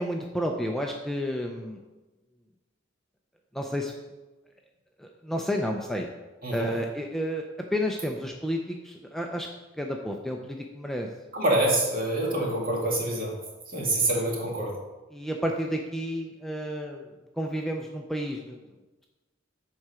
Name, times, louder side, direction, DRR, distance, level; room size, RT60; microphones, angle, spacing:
voice 1, 0.0-1.8 3.5-3.9 5.0-6.1 6.5-7.4 7.7-9.5 9.8-11.1 15.1-17.1 17.4-18.6, equal, ahead, 1 dB, 0.5 m, -31 dB
voice 2, 11.3-13.3 13.7-14.7, right 1 dB, 50° right, -2 dB, 2.1 m, -26 dB
7.7 x 4.8 x 5.7 m, 1.1 s
head